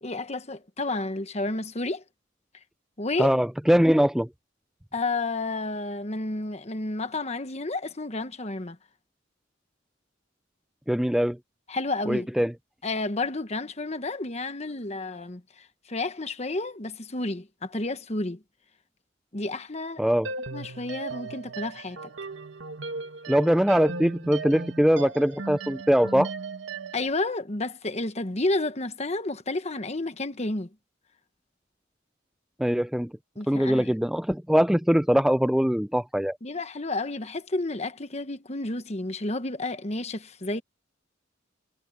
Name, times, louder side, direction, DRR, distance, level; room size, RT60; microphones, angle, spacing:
voice 1, 0.0-2.0 3.0-3.3 4.9-8.8 11.7-12.3 12.8-18.4 19.3-20.0 20.5-22.0 26.9-30.7 33.4-33.9 36.4-40.6, left 2 dB, 35° left, 1.2 m, -31 dB
voice 2, 3.2-4.3 10.9-11.4 12.1-12.5 20.0-20.3 23.3-26.3 32.6-33.1 33.5-36.4, equal, ahead, 0.3 m, -22 dB
sound 1, 20.2-27.1, right 3 dB, 80° right, 1.9 m, -37 dB
head